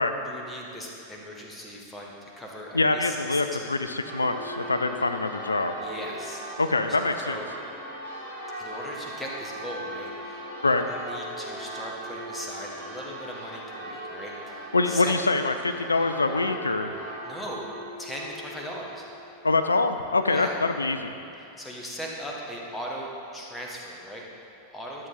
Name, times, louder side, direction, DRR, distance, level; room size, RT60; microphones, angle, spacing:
voice 1, 0.2-3.8 5.8-7.0 7.2-7.5 8.6-10.4 10.8-15.1 17.2-17.7 18.0-19.1 20.3-20.6 21.4-25.1, equal, 10° left, -2 dB, 1.5 m, -39 dB
voice 2, 2.7-5.8 6.6-7.4 10.6-10.9 14.7-16.9 19.4-21.1, left 3 dB, 80° left, 8 dB, 0.4 m, -25 dB
Church bell, 4.0-19.7, right 1 dB, 80° right, 2.5 m, -39 dB
12.0 x 7.4 x 4.0 m, 2.8 s
figure-of-eight pair, 90°, 0 cm